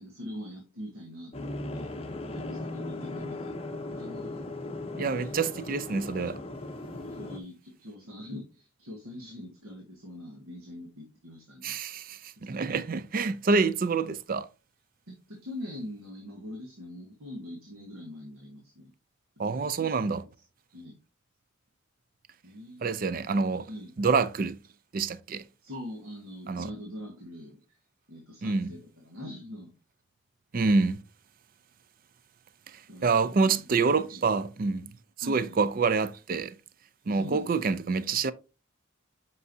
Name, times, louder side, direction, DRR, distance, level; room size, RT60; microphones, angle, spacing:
voice 1, 0.0-1.9 2.3-3.5 3.9-4.5 4.9-5.3 6.9-11.8 12.4-12.5 15.1-18.9 19.4-20.4 20.7-21.0 22.4-23.3 23.7-23.9 25.6-27.6 28.1-29.7 32.9-33.7 34.0-34.2 35.2-35.6 37.1-37.8, left 1 dB, 90° right, 1.6 m, -43 dB
sound 1, 1.3-7.4, left 2 dB, 30° left, 0.8 m, -37 dB
voice 2, 5.0-6.4 11.6-14.5 19.4-20.2 22.8-23.7 24.0-24.6 24.9-25.4 26.5-26.7 28.4-28.7 30.5-31.0 32.7-34.9 35.3-36.5 37.1-38.3, right 4 dB, 40° right, 0.4 m, -27 dB
8.0 x 5.4 x 2.7 m
head